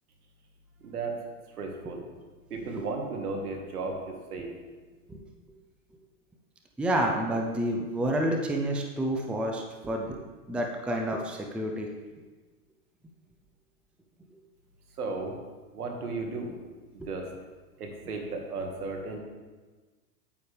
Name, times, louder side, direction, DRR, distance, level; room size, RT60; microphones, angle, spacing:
voice 1, 0.8-1.2 1.6-2.0 2.5-4.5 15.0-15.4 15.7-16.5 16.9-17.3 17.8-19.2, right 3 dB, 85° right, 2 dB, 1.9 m, -34 dB
voice 2, 6.8-10.2 10.5-11.9 17.0-17.1, right 1 dB, 5° right, 2 dB, 0.5 m, -29 dB
9.3 x 8.9 x 3.4 m, 1.3 s
hypercardioid pair, 115°, 44 cm